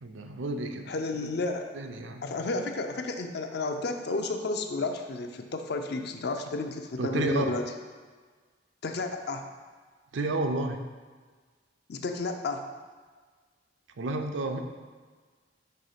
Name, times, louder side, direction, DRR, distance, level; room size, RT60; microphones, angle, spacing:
voice 1, 0.0-0.9 1.2-1.3 1.7-2.5 7.0-7.5 10.1-10.8 14.0-14.6, right 2 dB, 85° right, 5 dB, 0.5 m, -31 dB
voice 2, 0.9-1.7 2.2-7.6 8.8-9.5 11.9-12.7, left 3 dB, 60° left, 5 dB, 0.5 m, -32 dB
5.5 x 3.1 x 5.6 m, 1.5 s
head